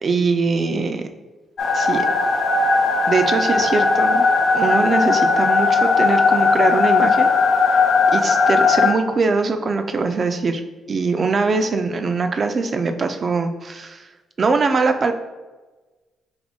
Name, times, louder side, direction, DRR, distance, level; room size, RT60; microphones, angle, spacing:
voice 1, 0.0-1.1 1.7-2.1 3.1-4.2 4.5-7.3 7.7-7.8 8.1-10.6 10.9-14.1 14.4-15.1, right 4 dB, 40° right, 7 dB, 0.4 m, -22 dB
ioscbank and reson exp, 1.6-8.9, left 4 dB, 55° left, 0.5 m, -17 dB
3.5 x 3.0 x 3.8 m, 1.2 s
cardioid pair, 90°, 0 cm